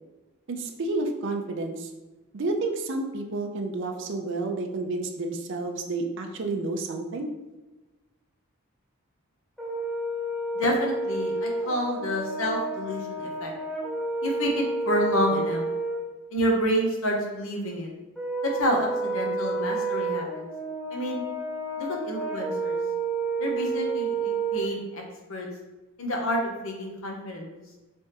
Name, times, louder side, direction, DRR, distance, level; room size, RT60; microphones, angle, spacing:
voice 1, 0.5-1.9 2.3-7.3, right 2 dB, 55° right, 3 dB, 0.4 m, -30 dB
Brass instrument, 9.6-16.0 18.2-24.7, right 3 dB, ahead, 0.6 m, -30 dB
voice 2, 10.5-13.5 14.2-15.6 16.3-17.9 18.4-20.5 20.9-21.2 21.8-22.8 23.4-25.0 25.3-25.5 26.0-27.6, equal, 65° left, 0 dB, 0.8 m, -28 dB
3.4 x 3.3 x 2.8 m, 1.1 s
head